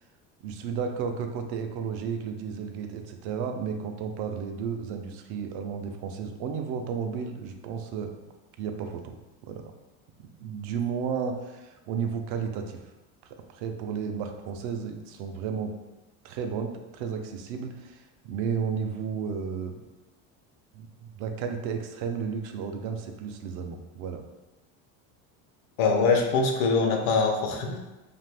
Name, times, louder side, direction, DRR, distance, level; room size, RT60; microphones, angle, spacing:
voice 1, 0.4-8.2 8.6-9.7 10.4-12.8 13.2-15.7 16.2-19.8 20.7-24.2, right 6 dB, 70° right, 5 dB, 0.5 m, -33 dB
voice 2, 25.8-27.9, left 4 dB, 75° left, 3 dB, 0.7 m, -23 dB
2.5 x 2.5 x 3.3 m, 1.1 s
cardioid pair, 135°, 37 cm